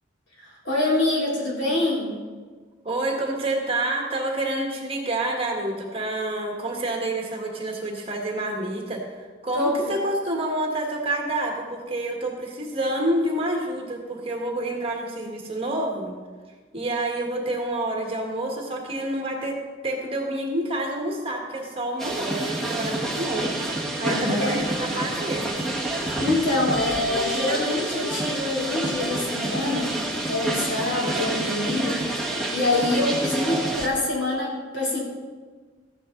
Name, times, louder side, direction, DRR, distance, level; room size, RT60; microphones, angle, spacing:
voice 1, 0.4-2.1 9.5-10.0 24.0-24.6 26.2-35.0, left 2 dB, 70° left, -3 dB, 3.2 m, -25 dB
voice 2, 2.8-16.1 16.7-19.6 19.8-23.6 24.0-25.4, right 1 dB, 30° right, 0 dB, 1.6 m, -28 dB
sound 1, 22.0-33.9, right 1 dB, ahead, 1.4 m, -28 dB
14.0 x 9.2 x 3.9 m, 1.4 s
head